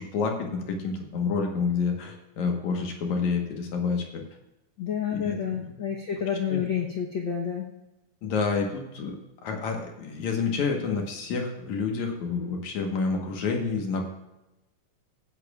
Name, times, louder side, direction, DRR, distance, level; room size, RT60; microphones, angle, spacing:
voice 1, 0.0-4.2 5.1-5.8 6.5-6.6 8.2-9.2 9.4-14.1, left 5 dB, 70° left, 2 dB, 2.6 m, -29 dB
voice 2, 4.8-7.7, left 8 dB, 85° left, 0 dB, 1.0 m, -29 dB
15.5 x 10.5 x 2.4 m, 0.94 s
omnidirectional pair, 3.7 m